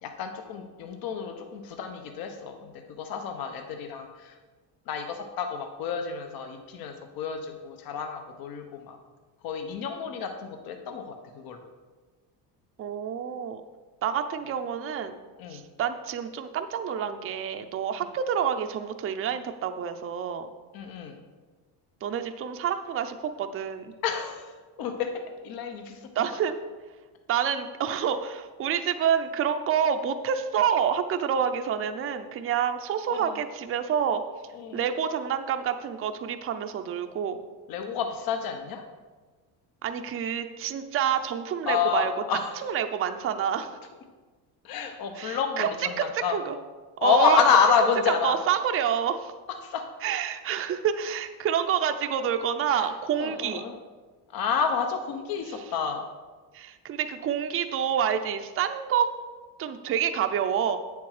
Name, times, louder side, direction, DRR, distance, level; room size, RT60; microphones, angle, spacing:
voice 1, 0.0-4.3 4.9-9.0 9.4-11.6 15.4-15.6 20.7-21.2 24.0-25.1 25.4-26.0 27.9-28.1 33.1-33.4 34.5-34.8 37.7-38.8 41.6-42.6 44.6-46.4 47.0-48.4 49.6-49.8 52.7-52.9 53.2-53.7 54.3-56.0, left 6 dB, 55° left, 6 dB, 1.1 m, -29 dB
voice 2, 12.8-13.6 14.0-15.1 15.5-20.5 22.0-23.9 26.2-26.6 27.3-34.2 34.7-37.4 39.8-42.1 42.6-43.7 45.2-45.7 46.0-46.5 47.0-47.4 48.1-49.3 50.0-53.6 56.5-59.1 59.6-60.8, right 8 dB, 30° right, 7 dB, 0.6 m, -28 dB
8.8 x 7.0 x 4.9 m, 1.4 s
cardioid pair, 125°, 43 cm